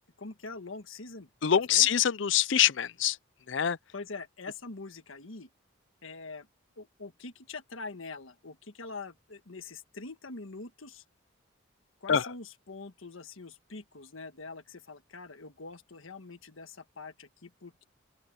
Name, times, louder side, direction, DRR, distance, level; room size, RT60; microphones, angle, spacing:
voice 1, 0.2-1.3 1.7-1.9 3.9-5.5 6.0-6.5 6.8-11.0 12.0-17.9, left 3 dB, 80° left, 1.5 m, -44 dB
voice 2, 1.4-3.2 3.5-3.8 12.1-12.2, left 9 dB, 65° left, 0.6 m, -24 dB
open air
head